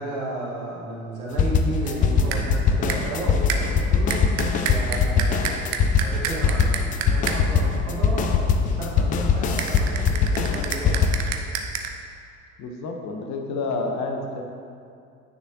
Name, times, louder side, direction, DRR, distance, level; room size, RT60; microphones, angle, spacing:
voice 1, 0.0-4.3 4.6-5.6 6.0-11.1, right 2 dB, 75° right, -5 dB, 1.7 m, -33 dB
sound 1, 1.4-11.2, left 5 dB, 20° left, 0.3 m, -21 dB
sound 2, 1.8-2.1 2.3-2.5 2.9-3.2 3.5-7.6 9.6-11.9, right 6 dB, 40° right, 0.6 m, -31 dB
voice 2, 12.6-14.4, left 3 dB, 40° left, 2 dB, 1.0 m, -29 dB
8.9 x 6.5 x 2.8 m, 2.4 s
figure-of-eight pair, 65°, 42 cm